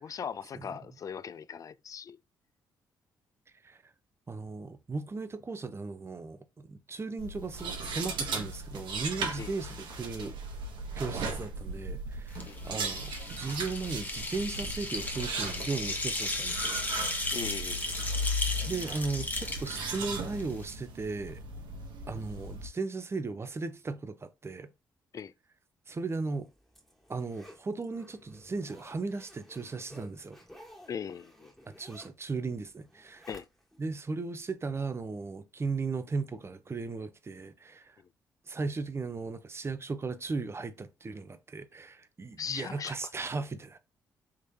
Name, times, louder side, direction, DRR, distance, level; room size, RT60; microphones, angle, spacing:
voice 1, 0.0-2.2 9.4-9.5 12.5-12.6 17.3-18.0 25.1-25.3 30.9-31.5 33.3-33.5 42.4-43.0, left 7 dB, 45° left, 0.3 m, -39 dB
voice 2, 4.3-10.4 11.0-16.8 18.7-21.4 22.1-24.7 25.9-26.5 27.1-30.4 31.7-33.3 33.8-38.0 38.5-43.8, right 4 dB, 30° right, 0.6 m, -36 dB
sound 1, 7.2-22.7, right 1 dB, 70° right, 1.0 m, -37 dB
sound 2, 12.3-20.7, left 2 dB, 20° left, 1.0 m, -36 dB
Zipper (clothing), 26.3-33.9 34.3-34.4, equal, 5° left, 1.4 m, -55 dB
3.7 x 3.1 x 2.7 m
supercardioid pair, 50°, 8 cm